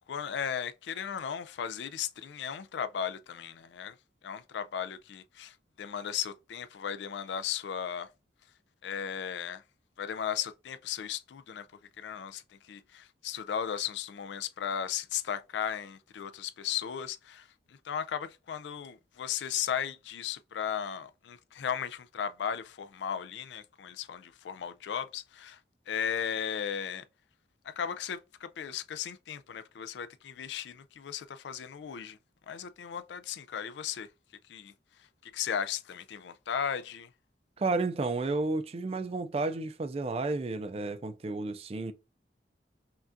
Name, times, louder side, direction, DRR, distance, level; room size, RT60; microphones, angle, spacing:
voice 1, 0.1-4.0 4.2-8.1 8.8-9.6 10.0-11.7 12.0-25.6 25.9-27.0 27.6-32.2 32.5-34.1 34.5-37.1, left 8 dB, 75° left, 0.4 m, -36 dB
voice 2, 37.6-41.9, right 3 dB, 35° right, 0.4 m, -32 dB
5.7 x 2.4 x 2.6 m
head